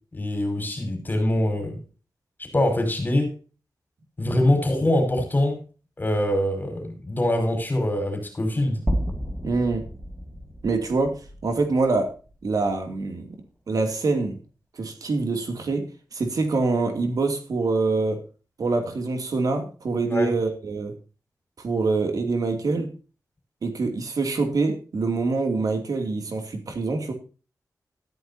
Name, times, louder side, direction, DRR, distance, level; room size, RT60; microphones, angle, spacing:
voice 1, 0.1-1.8 2.5-3.3 4.2-5.6 6.0-8.8 20.1-20.3, left 1 dB, 30° left, 5.0 m, -23 dB
sound 1, 8.9-13.1, equal, 5° right, 1.8 m, -32 dB
voice 2, 9.4-9.9 10.6-13.3 13.7-14.4 14.7-15.8 16.1-18.2 18.6-20.9 21.6-22.9 23.6-27.1, right 3 dB, 70° right, 2.6 m, -25 dB
13.5 x 12.0 x 2.8 m
wide cardioid pair, 145°, 7 cm